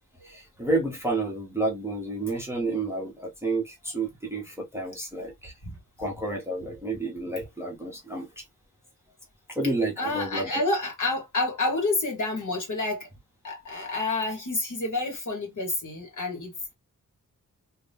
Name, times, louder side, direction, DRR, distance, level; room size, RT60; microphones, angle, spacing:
voice 1, 0.2-5.5 6.0-8.4 9.5-10.6, right 2 dB, 10° right, 0.8 m, -30 dB
voice 2, 10.0-13.1 13.4-16.7, left 2 dB, 65° left, 1.5 m, -29 dB
2.7 x 2.6 x 3.4 m
wide cardioid pair, 175°, 32 cm